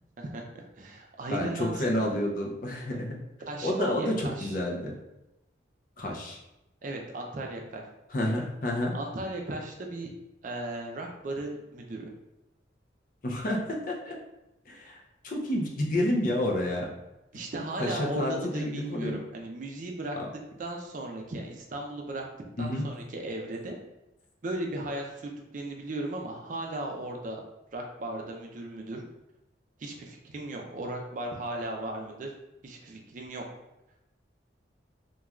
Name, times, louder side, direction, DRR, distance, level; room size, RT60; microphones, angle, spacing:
voice 1, 0.2-2.1 3.4-4.5 6.8-7.8 8.9-10.1 10.4-12.1 17.3-20.2 20.6-22.3 22.6-23.8 24.4-27.4 27.7-29.0 29.8-32.3 32.6-33.4, right 2 dB, 45° right, 1 dB, 0.4 m, -36 dB
voice 2, 1.3-3.2 3.6-4.9 6.0-6.4 8.1-8.9 13.2-14.1 14.7-16.9 17.8-19.2 20.2-20.3 22.6-22.9, left 1 dB, 45° left, -1 dB, 0.4 m, -29 dB
3.0 x 2.2 x 2.3 m, 0.93 s
head